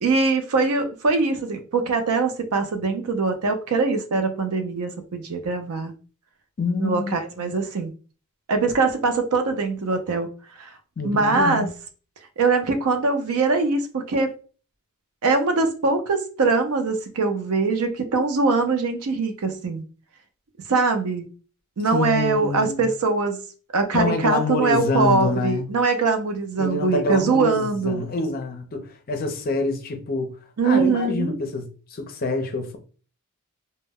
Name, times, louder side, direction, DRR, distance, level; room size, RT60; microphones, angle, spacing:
voice 1, 0.0-5.9 6.8-7.9 8.5-10.3 10.6-10.7 11.0-11.7 12.4-14.3 15.2-19.8 20.7-21.2 21.8-23.4 23.7-28.0 30.6-31.4, right 4 dB, 75° right, 0.5 m, -22 dB
voice 2, 6.6-7.5 11.0-11.7 21.9-22.8 23.9-25.7 26.6-30.4 30.6-32.8, left 3 dB, 40° left, 0.5 m, -26 dB
2.1 x 2.1 x 3.4 m
head